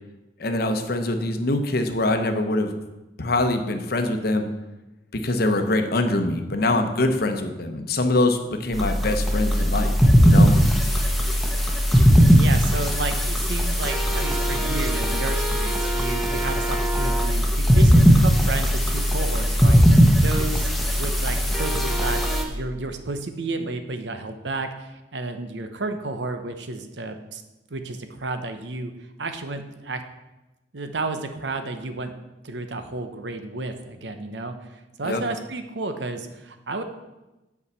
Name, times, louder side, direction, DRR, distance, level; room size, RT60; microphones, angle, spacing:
voice 1, 0.4-2.7 3.2-4.4 5.2-9.9 10.2-10.5 35.0-35.2, left 2 dB, 60° left, 7 dB, 0.9 m, -23 dB
sound 1, 8.7-22.4, equal, ahead, 1.0 m, -19 dB
voice 2, 12.4-27.4 27.7-28.9 29.2-30.0 30.7-32.1 32.4-36.8, right 2 dB, 75° right, 7 dB, 0.9 m, -32 dB
8.4 x 4.8 x 6.8 m, 1.0 s
head